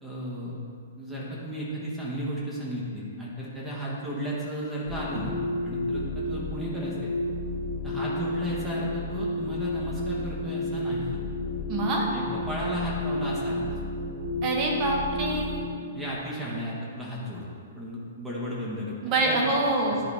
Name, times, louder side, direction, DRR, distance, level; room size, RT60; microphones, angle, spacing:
voice 1, 0.0-0.6 1.0-7.1 7.8-11.2 12.1-13.8 15.9-17.5 17.8-19.6 19.9-20.0, equal, 5° right, -7 dB, 1.4 m, -34 dB
sound 1, 4.8-15.8, left 1 dB, 45° left, 1.5 m, -31 dB
voice 2, 11.7-12.1 14.4-15.6 19.0-20.0, right 2 dB, 30° right, -1 dB, 1.5 m, -25 dB
10.5 x 4.7 x 3.5 m, 2.2 s
figure-of-eight pair, 115°, 0 cm